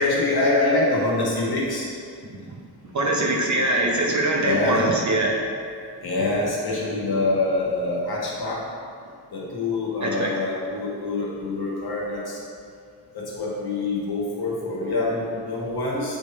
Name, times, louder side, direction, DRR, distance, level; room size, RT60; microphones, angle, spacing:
voice 1, 0.0-1.9 4.4-4.8 6.0-8.6 9.3-12.4 13.1-16.2, left 2 dB, 55° left, -5 dB, 1.4 m, -25 dB
voice 2, 2.8-5.4 10.0-10.3, right 1 dB, 40° right, -1 dB, 0.7 m, -22 dB
7.3 x 3.4 x 4.2 m, 2.2 s
wide cardioid pair, 175°, 44 cm